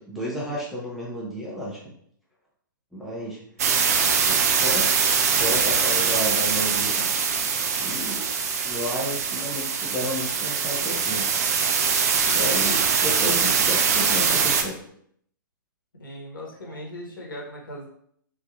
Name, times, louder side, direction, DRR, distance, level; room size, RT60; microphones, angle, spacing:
voice 1, 0.1-1.8 2.9-3.4 3.9-4.9 5.3-7.0 7.8-8.2 8.6-11.3 12.3-14.8 16.7-16.8, equal, ahead, -6 dB, 0.6 m, -32 dB
sound 1, 3.6-14.6, right 6 dB, 45° right, 0.4 m, -23 dB
voice 2, 16.0-17.9, equal, 70° left, -3 dB, 1.2 m, -38 dB
3.4 x 2.7 x 2.4 m, 0.67 s
figure-of-eight pair, 120°, 11 cm